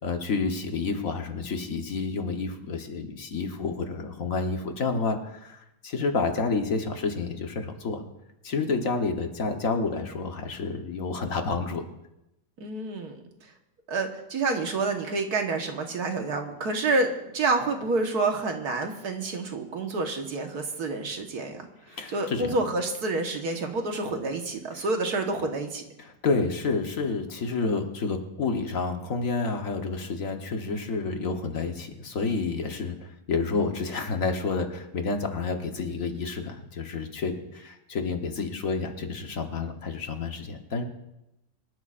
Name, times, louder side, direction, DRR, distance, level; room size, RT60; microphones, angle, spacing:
voice 1, 0.0-8.0 8.4-11.9 21.9-22.6 24.8-24.9 26.0-40.8, left 4 dB, 60° left, 4 dB, 1.6 m, -29 dB
voice 2, 12.6-13.2 13.9-21.7 22.1-25.8, right 3 dB, 75° right, 4 dB, 1.9 m, -28 dB
25.0 x 12.5 x 2.5 m, 0.88 s
omnidirectional pair, 1.7 m